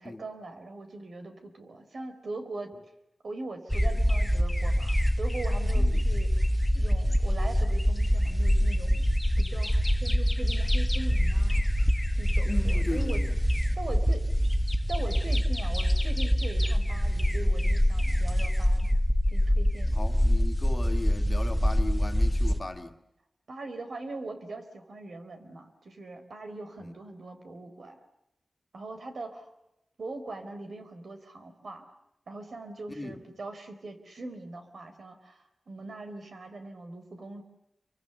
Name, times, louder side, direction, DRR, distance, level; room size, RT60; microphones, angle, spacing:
voice 1, 0.0-2.7 3.2-6.5 6.7-9.1 9.4-11.7 12.2-13.2 13.8-14.3 14.9-20.0 23.5-28.0 28.7-29.5 30.0-31.9 32.3-37.4, right 2 dB, 70° right, 4.0 m, -41 dB
sound 1, 3.7-22.6, equal, 5° left, 1.5 m, -25 dB
voice 2, 12.5-13.4 19.9-23.0 26.8-26.9 32.9-33.2, left 2 dB, 30° left, 2.0 m, -37 dB
28.0 x 24.0 x 6.9 m
wide cardioid pair, 90°, 0 cm